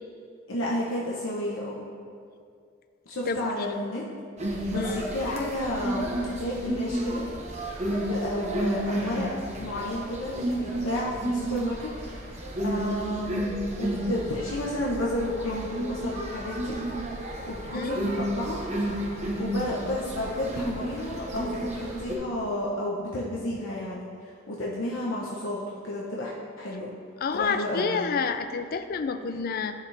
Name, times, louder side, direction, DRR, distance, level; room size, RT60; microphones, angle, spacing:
voice 1, 0.5-1.9 3.1-4.0 4.7-7.3 7.8-9.3 9.6-11.9 12.6-13.4 13.8-16.8 17.5-18.6 19.4-24.1 24.5-26.9 27.3-28.1, left 1 dB, 80° left, -4 dB, 0.9 m, -31 dB
sound 1, 4.4-22.1, right 1 dB, 35° right, 1.0 m, -32 dB
voice 2, 27.2-29.7, left 5 dB, 50° left, 9 dB, 0.4 m, -29 dB
11.0 x 5.0 x 3.3 m, 2.3 s
head